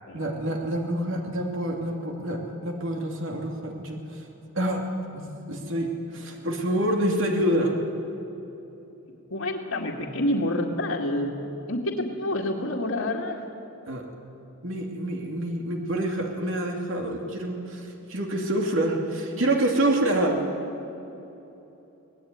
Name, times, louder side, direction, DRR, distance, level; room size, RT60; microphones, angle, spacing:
voice 1, 0.1-4.2 4.5-4.8 5.1-7.7 13.9-14.0 14.6-20.4, right 1 dB, 60° right, 1 dB, 2.8 m, -27 dB
voice 2, 9.3-11.3 11.7-13.4, left 1 dB, 70° left, -4 dB, 2.2 m, -28 dB
25.0 x 19.0 x 9.6 m, 3.0 s
head